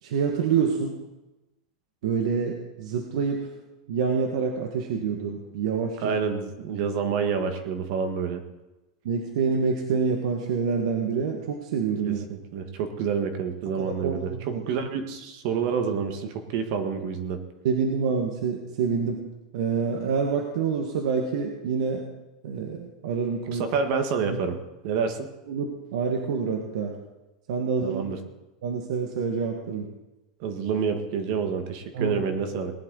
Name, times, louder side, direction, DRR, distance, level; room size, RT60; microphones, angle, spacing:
voice 1, 0.0-0.9 2.0-3.5 3.9-6.0 9.0-12.2 13.8-14.6 17.6-19.2 19.5-22.1 22.4-23.6 24.3-24.4 25.5-26.9 27.5-28.0 28.6-29.9 31.9-32.2, right 6 dB, 60° right, 2 dB, 1.7 m, -27 dB
voice 2, 6.0-8.4 12.0-17.4 23.5-24.6 24.8-25.3 27.8-28.2 30.4-32.7, right 6 dB, 40° right, 6 dB, 1.6 m, -28 dB
19.0 x 11.0 x 4.0 m, 1.0 s
supercardioid pair, 175°, 4 cm